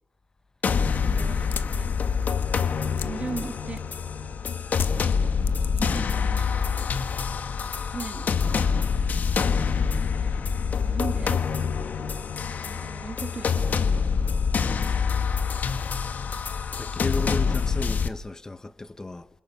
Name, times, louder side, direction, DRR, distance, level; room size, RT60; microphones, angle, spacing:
sound 1, 0.6-18.1, left 6 dB, 50° left, 1.4 m, -26 dB
voice 1, 1.0-1.9 2.9-3.8 5.5-7.0 7.8-8.3 10.8-11.4 12.7-14.2, right 4 dB, 30° right, 2.0 m, -38 dB
sound 2, 1.5-4.1 4.7-6.3 6.6-7.1, left 8 dB, 70° left, 0.9 m, -37 dB
voice 2, 16.7-19.3, left 2 dB, 15° left, 1.1 m, -34 dB
30.0 x 28.5 x 6.0 m
wide cardioid pair, 170°, 4 cm